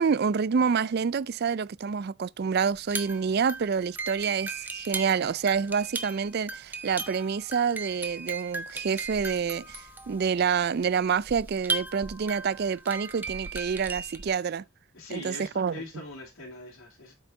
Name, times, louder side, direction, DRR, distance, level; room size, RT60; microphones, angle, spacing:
voice 1, 0.0-14.6 15.1-15.8, right 6 dB, 45° right, 0.4 m, -27 dB
sound 1, 2.8-14.3, right 4 dB, 10° right, 0.8 m, -37 dB
voice 2, 14.9-17.1, left 2 dB, 75° left, 3.1 m, -42 dB
8.3 x 5.8 x 3.9 m
head